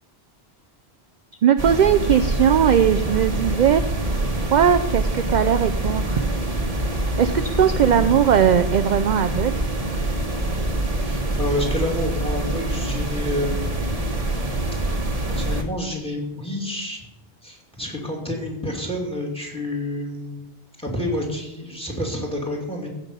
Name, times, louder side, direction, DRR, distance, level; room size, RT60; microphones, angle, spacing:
voice 1, 1.4-3.8 4.4-6.3 7.2-9.6, right 9 dB, 55° right, 10 dB, 0.5 m, -19 dB
sound 1, 1.6-15.6, right 1 dB, 35° right, 1.3 m, -25 dB
voice 2, 7.9-8.2 11.0-13.9 15.3-17.0 17.4-20.4 20.8-22.9, left 1 dB, 5° left, 1 dB, 2.6 m, -29 dB
15.5 x 6.0 x 5.4 m, 0.98 s
omnidirectional pair, 1.1 m